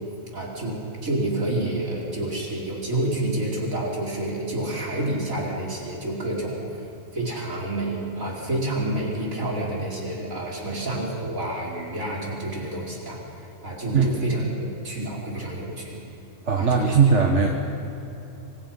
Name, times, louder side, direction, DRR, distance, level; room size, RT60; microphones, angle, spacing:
voice 1, 0.3-6.6 7.1-13.2 13.6-14.4 14.8-16.0 16.6-17.0, right 1 dB, 80° right, -3 dB, 4.9 m, -28 dB
voice 2, 16.5-17.5, right 5 dB, 60° right, 1 dB, 1.8 m, -19 dB
26.0 x 26.0 x 5.7 m, 3.0 s
omnidirectional pair, 1.4 m